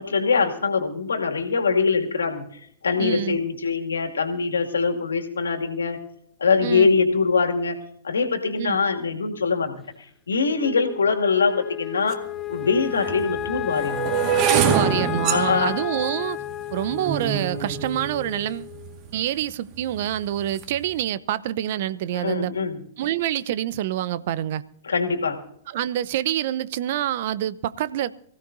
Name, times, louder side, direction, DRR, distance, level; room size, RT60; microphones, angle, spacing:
voice 1, 0.0-2.5 2.8-6.0 6.4-9.8 10.3-12.2 12.5-14.1 15.3-15.7 22.1-22.8 24.8-25.4, left 5 dB, 85° left, 2.3 m, -23 dB
voice 2, 3.0-3.4 6.6-6.9 8.6-8.8 14.5-16.4 16.7-18.7 19.1-22.5 23.0-24.6 25.7-28.1, right 12 dB, 60° right, 0.7 m, -26 dB
Wind instrument woodwind instrument, 10.6-19.1, left 12 dB, 20° left, 0.7 m, -32 dB
sound 1, 12.1-12.2 13.0-19.1 19.8-20.1 20.4-20.8, right 8 dB, 40° right, 1.8 m, -26 dB
23.5 x 16.0 x 2.7 m
hypercardioid pair, 105°, 0 cm